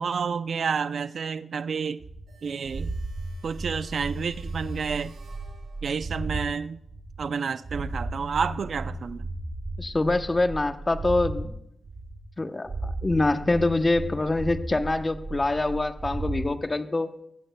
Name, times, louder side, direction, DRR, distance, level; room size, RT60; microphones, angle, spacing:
voice 1, 0.0-2.0 2.4-2.9 3.4-5.2 5.8-6.8 7.2-9.3, right 6 dB, 65° right, 0.4 m, -30 dB
sound 1, 2.0-6.5 6.8-11.5 11.8-12.4 12.6-16.5, right 2 dB, 50° right, 2.8 m, -35 dB
sound 2, 2.3-6.2, right 4 dB, 85° right, 4.7 m, -56 dB
voice 2, 9.8-11.6 12.4-17.1, left 2 dB, 25° left, 0.8 m, -25 dB
21.5 x 16.0 x 2.3 m
cardioid pair, 80°, 0 cm